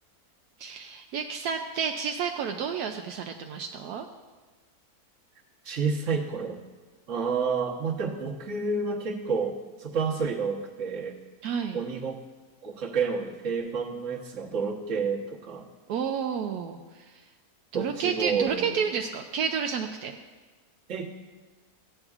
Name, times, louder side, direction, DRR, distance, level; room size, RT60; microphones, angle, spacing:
voice 1, 0.6-4.1 11.4-11.8 15.9-17.2 17.7-20.2, right 7 dB, 80° right, 4 dB, 1.1 m, -30 dB
voice 2, 5.6-6.6 7.1-11.2 11.7-12.2 12.6-15.6 17.7-18.8 20.9-21.1, right 5 dB, 55° right, -1 dB, 1.4 m, -29 dB
15.0 x 8.8 x 2.4 m, 1.3 s
omnidirectional pair, 1.6 m